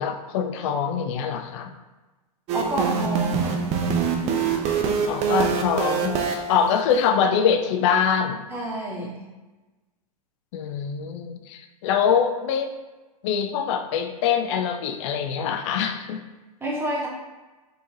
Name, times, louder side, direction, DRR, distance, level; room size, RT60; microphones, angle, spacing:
voice 1, 0.0-1.7 5.1-8.4 10.5-12.7 13.2-16.2, left 7 dB, 50° left, 7 dB, 0.4 m, -24 dB
voice 2, 2.5-3.7 8.5-9.2 16.6-17.1, right 1 dB, 10° right, -5 dB, 1.3 m, -29 dB
sound 1, 2.5-7.1, right 6 dB, 35° right, 0.6 m, -25 dB
4.3 x 3.2 x 2.8 m, 1.2 s
hypercardioid pair, 100°, 20 cm